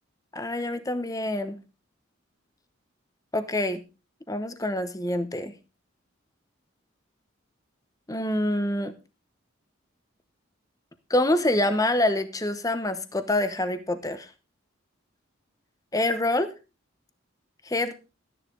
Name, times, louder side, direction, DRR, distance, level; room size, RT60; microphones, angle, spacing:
voice 1, 0.3-1.6 3.3-3.8 4.3-5.6 8.1-8.9 11.1-14.3 15.9-16.5 17.6-17.9, left 1 dB, 15° left, 11 dB, 1.0 m, -26 dB
12.5 x 10.0 x 3.9 m, 0.30 s
head